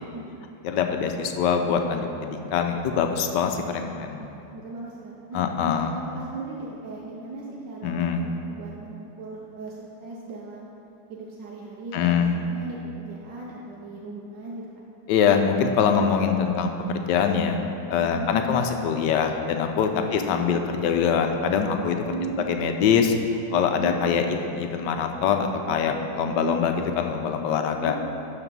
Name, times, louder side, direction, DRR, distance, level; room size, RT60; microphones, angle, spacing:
voice 1, 0.0-0.5 4.2-10.7 11.1-14.6 18.0-18.6 20.0-20.6 22.1-22.6 23.6-24.0 26.2-26.6 27.6-27.9, right 3 dB, 80° right, -3 dB, 1.4 m, -38 dB
voice 2, 0.6-4.2 5.3-5.9 7.8-8.2 11.9-12.3 15.1-17.6 17.9-22.0 22.5-23.1 23.5-27.9, left 7 dB, 85° left, 5 dB, 1.3 m, -23 dB
12.0 x 4.1 x 5.3 m, 2.7 s
omnidirectional pair, 1.9 m